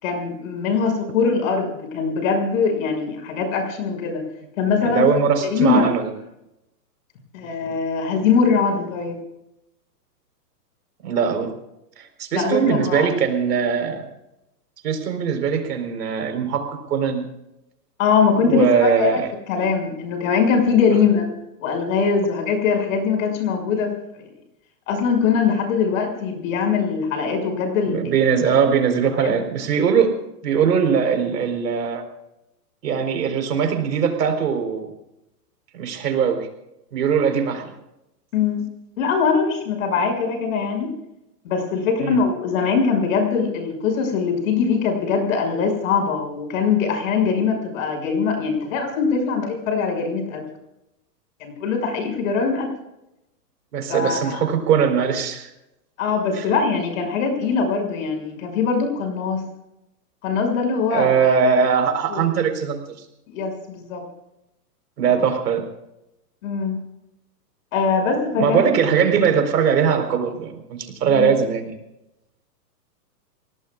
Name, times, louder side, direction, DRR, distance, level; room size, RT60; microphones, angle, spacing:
voice 1, 0.0-4.2 4.6-5.0 5.4-5.9 7.3-9.2 12.3-13.1 18.0-19.2 19.5-21.3 21.6-23.9 24.2-24.3 24.9-28.0 29.1-29.4 38.3-38.6 39.0-40.9 41.4-50.4 51.4-52.7 53.9-54.4 56.0-59.4 60.2-61.3 62.1-62.2 63.3-64.0 66.4-66.8 67.7-68.6 71.1-71.3, left 5 dB, 55° left, 4 dB, 6.4 m, -22 dB
voice 2, 4.8-6.1 11.0-11.5 12.0-14.1 14.8-17.3 18.4-19.3 27.9-30.1 30.4-32.0 32.8-34.9 35.7-36.5 36.9-37.7 42.0-42.2 53.7-55.5 56.3-56.4 60.9-62.8 65.0-65.6 68.4-71.7, right 6 dB, 75° right, 5 dB, 4.5 m, -20 dB
29.0 x 18.5 x 2.5 m, 0.86 s
hypercardioid pair, 150°, 49 cm